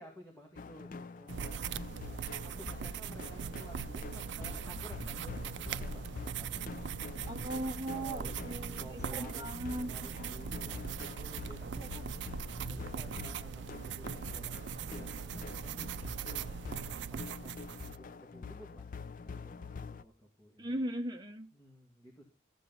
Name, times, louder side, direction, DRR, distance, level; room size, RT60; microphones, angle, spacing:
voice 1, 0.0-7.6 7.9-9.6 9.9-12.3 12.6-15.8 16.1-20.7 21.5-22.3, equal, 15° left, 1.9 m, -54 dB
sound 1, 0.6-20.0, left 5 dB, 45° left, 0.4 m, -46 dB
sound 2, 1.3-18.0, right 7 dB, 70° right, 0.4 m, -40 dB
voice 2, 7.3-8.8 9.1-9.9 10.1-10.3 20.6-21.5, right 1 dB, 20° right, 0.8 m, -38 dB
13.0 x 7.6 x 3.9 m
head